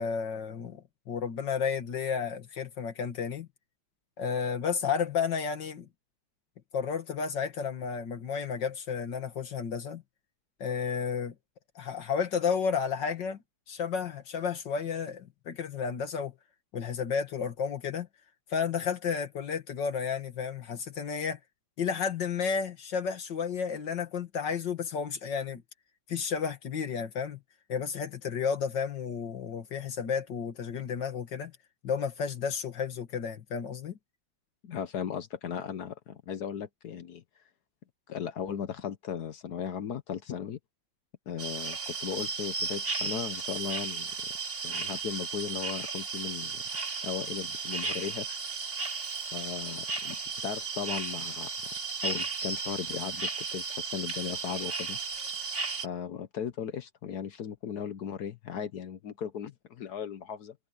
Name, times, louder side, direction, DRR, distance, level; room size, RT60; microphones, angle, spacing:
voice 1, 0.0-3.5 4.2-5.9 6.7-10.0 10.6-11.3 11.8-13.4 13.7-16.3 16.7-18.1 18.5-21.4 21.8-25.6 26.1-27.4 27.7-31.5 31.8-34.0, left 6 dB, 85° left, 2.4 m, -32 dB
voice 2, 34.6-37.2 38.1-40.6 41.3-44.1 44.6-46.6 47.0-48.4 49.3-50.2 50.4-51.5 52.0-55.0 55.8-60.5, left 8 dB, 65° left, 1.4 m, -37 dB
sound 1, 41.4-55.9, right 4 dB, 40° right, 3.0 m, -35 dB
omnidirectional pair, 1.9 m